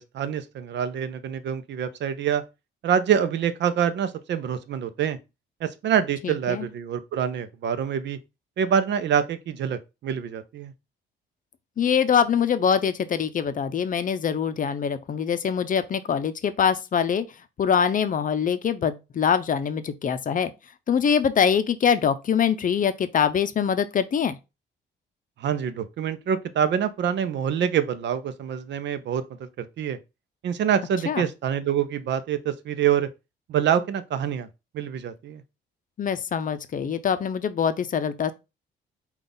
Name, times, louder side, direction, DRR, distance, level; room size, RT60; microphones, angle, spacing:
voice 1, 0.0-2.4 2.8-5.2 5.6-8.2 8.6-10.7 25.4-29.2 29.6-30.0 30.4-33.1 33.5-34.5 34.7-35.4, right 8 dB, 65° right, 0.6 m, -26 dB
voice 2, 6.2-6.7 11.8-17.2 17.6-20.5 20.9-24.4 31.1-31.2 36.0-38.3, left 7 dB, 40° left, 0.5 m, -24 dB
5.2 x 2.4 x 3.9 m
cardioid pair, 90°, 20 cm